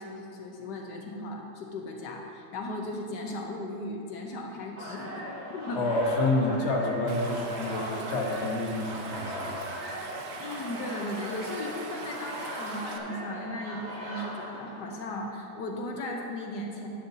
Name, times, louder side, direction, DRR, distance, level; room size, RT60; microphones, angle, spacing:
voice 1, 0.0-5.8 6.5-6.6 10.4-16.9, left 1 dB, 75° left, 1 dB, 1.5 m, -37 dB
sound 1, 4.8-15.2, equal, 40° right, 1.8 m, -39 dB
voice 2, 5.7-9.7, left 2 dB, 45° left, -1 dB, 1.3 m, -28 dB
Stream, 7.1-13.0, right 5 dB, 70° right, 1.2 m, -44 dB
11.0 x 11.0 x 2.8 m, 2.7 s
omnidirectional pair, 1.8 m